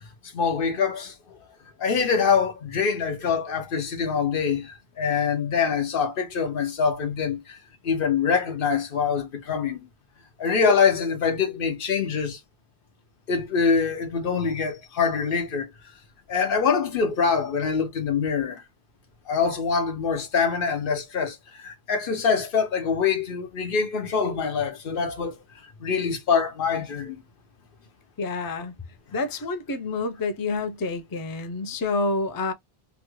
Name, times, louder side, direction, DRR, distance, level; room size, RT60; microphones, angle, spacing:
voice 1, 0.3-1.1 1.8-7.6 7.8-9.8 10.4-12.4 13.3-15.7 16.3-18.6 19.3-25.4 25.8-27.2, left 6 dB, 60° left, 1.0 m, -24 dB
voice 2, 28.2-28.8 29.1-32.5, left 3 dB, 30° left, 0.4 m, -28 dB
2.9 x 2.3 x 3.0 m
omnidirectional pair, 1.0 m